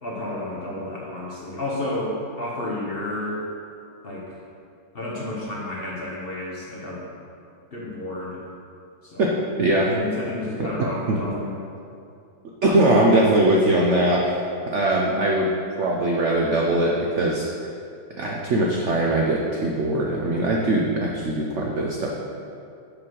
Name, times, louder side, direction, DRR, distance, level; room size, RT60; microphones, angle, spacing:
voice 1, 0.0-3.4 4.0-4.4 4.9-7.0 7.7-8.4 9.0-9.2 9.8-11.6, left 1 dB, 40° left, -5 dB, 0.9 m, -31 dB
voice 2, 12.6-14.4 14.7-15.5 15.8-17.4 18.2-22.1, right 1 dB, 75° right, -2 dB, 0.6 m, -21 dB
5.7 x 5.0 x 6.3 m, 2.5 s
omnidirectional pair, 2.1 m